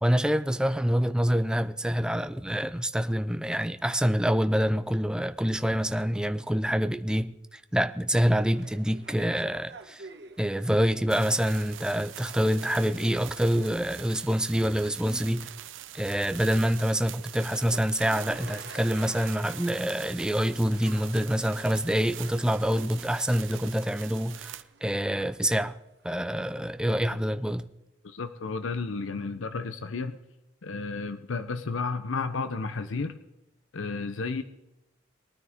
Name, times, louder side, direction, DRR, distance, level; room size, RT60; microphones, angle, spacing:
voice 1, 0.0-10.1 10.4-15.5 15.9-25.8 26.0-27.7, equal, 5° right, 0.4 m, -26 dB
sound 1, 8.5-26.6, right 4 dB, 60° right, 1.2 m, -50 dB
sound 2, 11.1-24.6, right 12 dB, 80° right, 0.6 m, -44 dB
voice 2, 28.0-30.2 30.6-33.2 33.7-34.4, left 4 dB, 85° left, 0.7 m, -32 dB
21.0 x 9.5 x 3.6 m
head